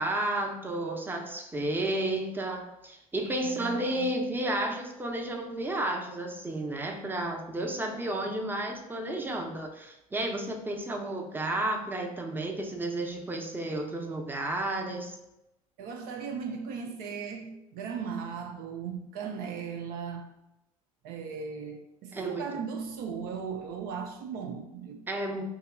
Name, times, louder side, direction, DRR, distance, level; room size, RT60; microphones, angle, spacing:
voice 1, 0.0-15.2 22.1-22.4 25.1-25.4, right 1 dB, 10° right, 2 dB, 0.6 m, -32 dB
voice 2, 3.4-4.1 15.8-20.3 21.0-25.0, right 6 dB, 55° right, 4 dB, 0.5 m, -37 dB
4.7 x 2.9 x 2.2 m, 0.89 s
hypercardioid pair, 70°, 18 cm